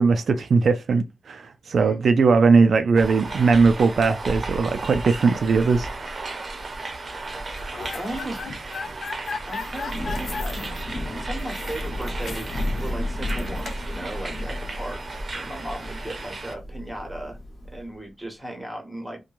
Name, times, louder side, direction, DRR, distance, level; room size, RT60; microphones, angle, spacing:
voice 1, 0.0-5.9, right 4 dB, 75° right, 0.3 m, -19 dB
sound 1, 3.0-16.5, right 2 dB, 50° right, 0.7 m, -35 dB
sound 2, 7.4-13.9, left 5 dB, 80° left, 0.4 m, -37 dB
voice 2, 7.9-8.5 9.4-17.4 17.7-19.2, right 1 dB, 5° right, 1.2 m, -36 dB
Thunder / Rain, 9.5-17.9, left 1 dB, 60° left, 1.0 m, -33 dB
3.0 x 2.2 x 2.4 m
wide cardioid pair, 105°, 0 cm